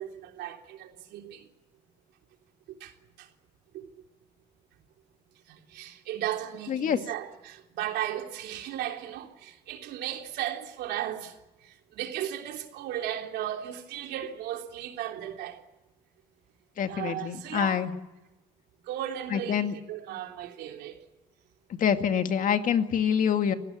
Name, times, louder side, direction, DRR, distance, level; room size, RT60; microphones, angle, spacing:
voice 1, 0.0-1.5 2.7-3.3 3.7-3.9 5.5-15.6 16.9-17.9 18.8-21.0, right 11 dB, 80° right, 3.5 m, -36 dB
voice 2, 16.8-17.9 19.3-19.7 21.8-23.5, left 8 dB, 50° left, 2.1 m, -26 dB
27.5 x 18.0 x 8.7 m
cardioid pair, 110°, 17 cm